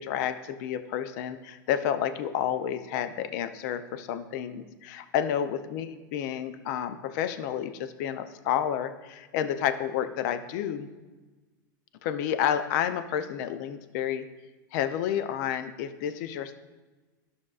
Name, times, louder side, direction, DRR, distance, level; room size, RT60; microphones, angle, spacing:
voice 1, 0.0-10.9 12.0-14.3 14.7-16.6, left 9 dB, 55° left, 11 dB, 0.5 m, -30 dB
12.0 x 6.2 x 2.4 m, 1.2 s
hypercardioid pair, 120°, 11 cm